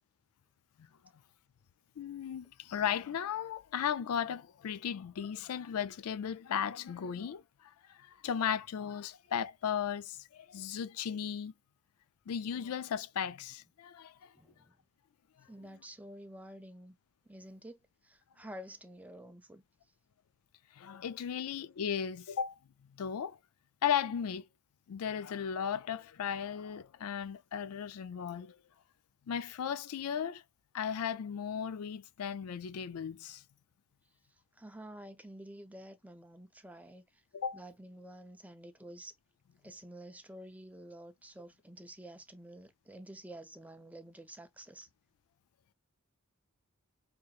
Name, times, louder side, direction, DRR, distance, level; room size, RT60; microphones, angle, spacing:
voice 1, 2.0-7.4 7.9-11.5 12.3-14.3 20.8-22.6 23.0-23.4 23.8-24.5 24.9-28.6 29.3-30.4 30.7-33.4 37.3-37.6, left 8 dB, 80° left, 0.4 m, -36 dB
voice 2, 14.3-14.8 15.5-17.0 17.3-19.6 34.6-37.2 37.5-39.1 39.6-44.9, right 1 dB, 5° right, 0.6 m, -50 dB
6.4 x 2.9 x 2.4 m
head